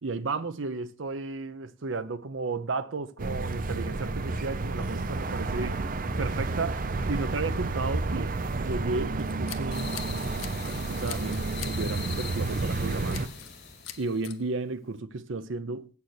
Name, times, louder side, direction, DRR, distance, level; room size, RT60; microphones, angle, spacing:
voice 1, 0.0-5.8 6.2-6.8 7.1-10.0 10.6-13.2 14.0-15.9, right 3 dB, 80° right, 0.7 m, -33 dB
sound 1, 3.2-13.3, right 3 dB, 45° right, 0.6 m, -31 dB
Scissors, 9.2-10.8 11.1-11.8 12.1-12.3 13.1-13.6 13.8-14.4, left 11 dB, 85° left, 0.9 m, -42 dB
sound 2, 9.7-14.4, left 4 dB, 55° left, 2.4 m, -41 dB
8.0 x 6.9 x 6.4 m
head